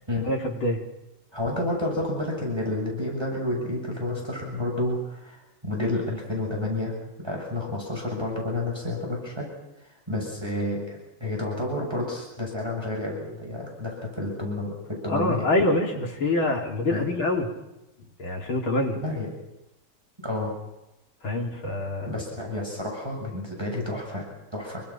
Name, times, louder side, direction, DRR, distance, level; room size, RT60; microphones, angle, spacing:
voice 1, 0.3-0.8 15.1-17.5 18.2-19.0 21.2-22.1, left 2 dB, 75° left, 0 dB, 4.4 m, -25 dB
voice 2, 1.3-9.5 10.1-15.5 16.9-17.1 19.0-19.3 20.2-20.5 22.0-24.8, left 1 dB, 10° right, -2 dB, 7.0 m, -30 dB
27.5 x 24.0 x 5.9 m, 0.97 s
omnidirectional pair, 2.3 m